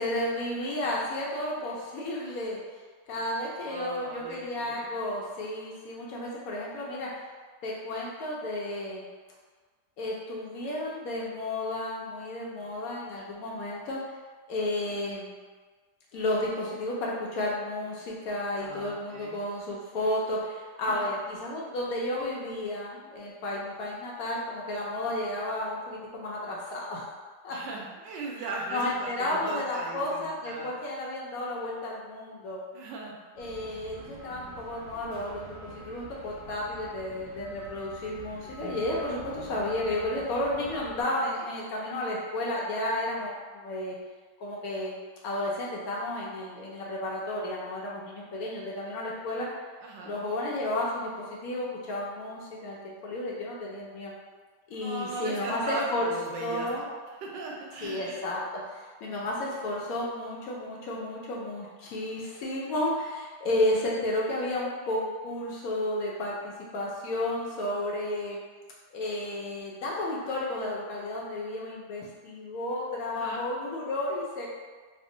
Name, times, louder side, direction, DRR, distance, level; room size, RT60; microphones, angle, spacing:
voice 1, 0.0-2.6 3.1-7.2 7.6-9.1 10.0-14.1 14.5-15.3 16.1-27.0 27.4-27.6 28.7-32.6 33.4-43.9 44.4-49.5 50.0-54.1 54.7-56.1 56.4-56.8 57.8-58.4 58.7-68.4 68.9-74.5, left 1 dB, 70° left, -4 dB, 0.9 m, -32 dB
voice 2, 3.6-4.9 18.6-19.4 20.8-21.1 27.5-30.7 32.7-33.1 49.8-50.1 54.8-56.9 57.2-58.2 73.1-73.4, right 3 dB, 90° right, -1 dB, 1.3 m, -38 dB
sound 1, 33.4-41.0, right 2 dB, 35° right, 1.0 m, -46 dB
3.5 x 2.0 x 3.7 m, 1.4 s
omnidirectional pair, 1.9 m